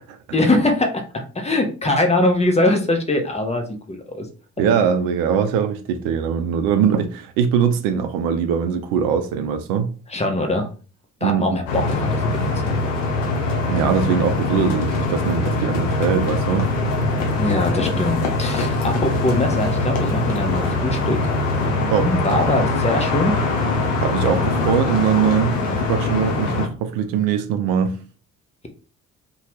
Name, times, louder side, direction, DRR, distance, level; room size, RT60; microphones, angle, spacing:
voice 1, 0.3-4.3 10.1-10.7 11.2-12.3 17.4-21.2 21.6-23.4, left 2 dB, 15° left, 0.6 m, -22 dB
voice 2, 4.6-9.9 11.2-11.6 13.7-16.7 21.9-22.1 24.0-28.0, right 7 dB, 60° right, 0.5 m, -21 dB
sound 1, 11.7-26.7, left 2 dB, 75° left, 0.7 m, -22 dB
2.8 x 2.2 x 3.1 m
figure-of-eight pair, 40°, 39 cm